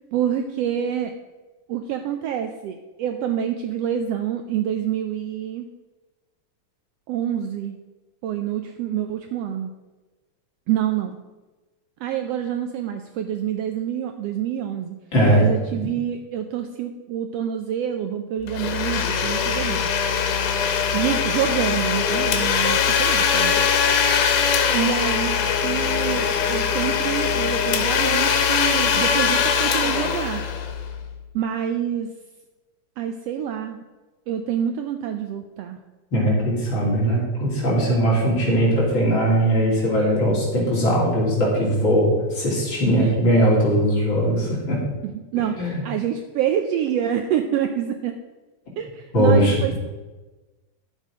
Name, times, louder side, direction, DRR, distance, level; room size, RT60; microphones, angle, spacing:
voice 1, 0.1-1.1 1.7-5.7 7.1-7.8 8.2-9.7 10.7-11.2 12.0-15.0 15.3-19.9 20.9-23.7 24.7-30.4 31.3-32.1 33.0-33.8 34.3-35.8 43.0-43.1 45.0-48.2 48.8-49.8, right 10 dB, 90° right, 7 dB, 1.4 m, -27 dB
voice 2, 15.1-15.4 36.1-44.8 45.6-45.8 49.1-49.5, equal, 40° left, -5 dB, 3.6 m, -20 dB
Domestic sounds home sounds, 18.5-31.1, left 7 dB, 90° left, 2.6 m, -21 dB
11.5 x 7.5 x 5.1 m, 1.2 s
omnidirectional pair, 3.5 m